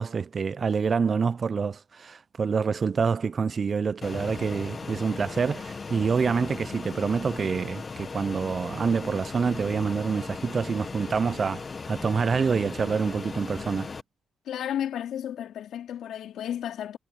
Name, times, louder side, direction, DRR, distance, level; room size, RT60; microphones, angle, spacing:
voice 1, 0.0-13.9, right 5 dB, 40° right, 0.6 m, -27 dB
Fixed-wing aircraft airplane, 4.0-14.0, left 4 dB, 35° left, 1.3 m, -37 dB
voice 2, 14.5-17.0, left 10 dB, 75° left, 3.0 m, -33 dB
cardioid pair, 90°, 0 cm